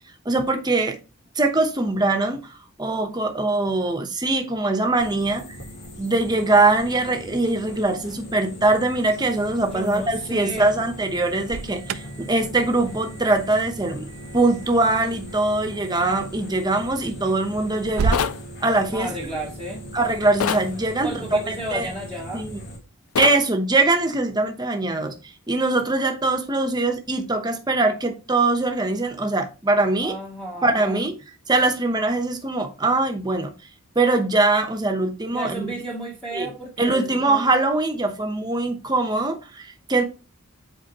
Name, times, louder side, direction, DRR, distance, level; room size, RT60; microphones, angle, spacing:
voice 1, 0.2-1.0 1.4-2.5 2.8-5.4 6.0-18.2 18.6-19.1 19.9-21.9 22.3-22.6 23.2-25.1 25.5-30.2 30.6-31.2 31.5-33.5 33.9-35.7 36.3-36.5 36.8-40.0, right 2 dB, 20° right, 0.9 m, -22 dB
sound 1, 5.0-22.8, equal, 50° left, 1.7 m, -39 dB
voice 2, 9.7-10.7 18.9-19.9 21.0-22.5 30.0-31.1 35.3-37.4, right 1 dB, 5° left, 1.0 m, -33 dB
Alarm, 11.4-18.3, right 5 dB, 75° right, 0.5 m, -33 dB
sound 2, 18.1-18.4 20.4-20.7 23.2-23.4, left 7 dB, 85° left, 0.5 m, -24 dB
7.9 x 4.4 x 2.9 m
head